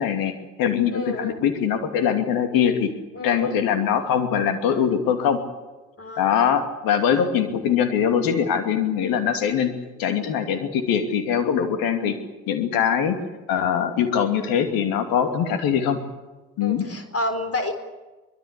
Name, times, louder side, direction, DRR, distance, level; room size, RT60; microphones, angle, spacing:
voice 1, 0.0-2.9 3.2-5.4 6.2-9.7 10.0-12.2 12.5-13.2 13.5-16.0 16.6-16.9, left 8 dB, 70° left, 8 dB, 2.7 m, -22 dB
voice 2, 0.9-1.4 3.1-3.6 6.0-6.5 16.6-17.7, left 1 dB, 40° left, 7 dB, 4.2 m, -29 dB
24.5 x 21.0 x 8.4 m, 1.2 s
figure-of-eight pair, 40°, 37 cm